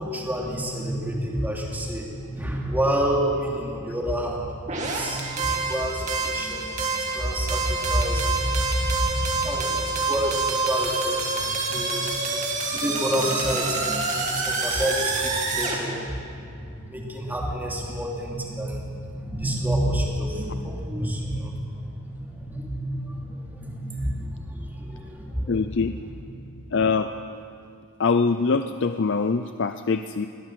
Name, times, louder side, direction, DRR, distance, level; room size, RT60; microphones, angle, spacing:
voice 1, 0.0-12.4 12.7-16.2 16.6-25.5 26.0-26.1, equal, 10° right, -2 dB, 2.9 m, -29 dB
sound 1, 4.7-15.8, right 3 dB, 35° right, 2.7 m, -27 dB
voice 2, 25.5-25.9 26.7-27.1 28.0-30.3, left 4 dB, 55° left, 9 dB, 0.5 m, -23 dB
22.0 x 17.0 x 7.7 m, 2.4 s
head